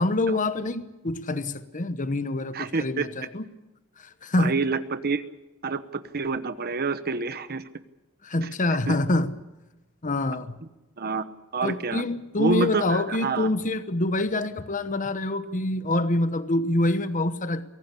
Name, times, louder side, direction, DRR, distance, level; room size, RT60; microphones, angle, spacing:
voice 1, 0.0-3.5 4.0-4.5 8.2-9.3 10.0-10.6 11.6-17.6, left 2 dB, 35° left, 1.1 m, -26 dB
voice 2, 2.5-3.1 4.4-5.2 5.6-7.6 8.4-8.5 8.9-9.0 11.0-11.2 11.5-12.0 12.4-13.5, right 4 dB, 45° right, 1.1 m, -27 dB
23.0 x 17.5 x 8.5 m
head